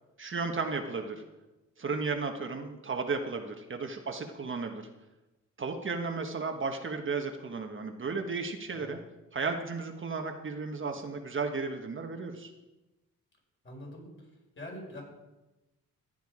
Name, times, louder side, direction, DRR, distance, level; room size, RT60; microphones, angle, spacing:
voice 1, 0.2-1.2 1.8-4.8 5.6-9.0 9.3-12.5, right 4 dB, 40° right, 4 dB, 1.4 m, -34 dB
voice 2, 13.6-14.1 14.6-15.0, left 1 dB, 35° left, -1 dB, 5.5 m, -43 dB
15.0 x 9.3 x 5.0 m, 1.0 s
cardioid pair, 95°, 32 cm